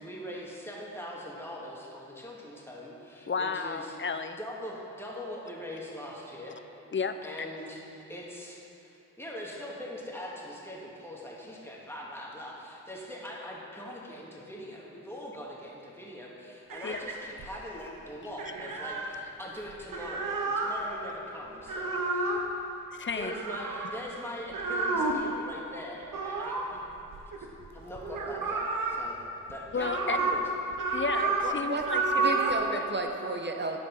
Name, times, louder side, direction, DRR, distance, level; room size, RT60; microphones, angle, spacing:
voice 1, 0.0-4.0 4.4-6.6 7.2-7.8 8.1-22.4 23.1-26.8 27.4-27.5 27.7-29.2 29.5-30.4, equal, 5° left, -4 dB, 2.1 m, -42 dB
voice 2, 3.3-4.4 6.9-7.2 16.8-17.0 22.9-23.3 29.7-30.2 30.9-32.2 32.7-32.8, left 5 dB, 40° left, 9 dB, 0.6 m, -32 dB
sound 1, 16.7-17.7 18.4-19.1 19.7-20.7 21.6-22.4 23.2-24.0 24.5-25.3 26.1-27.7 28.0-29.0 29.5-30.4 30.7-31.5 31.8-32.6, right 3 dB, 90° right, 0.8 m, -30 dB
voice 3, 31.4-31.8 32.2-33.8, right 3 dB, 35° right, 3 dB, 1.0 m, -32 dB
9.6 x 5.3 x 5.4 m, 3.0 s
cardioid pair, 50°, 32 cm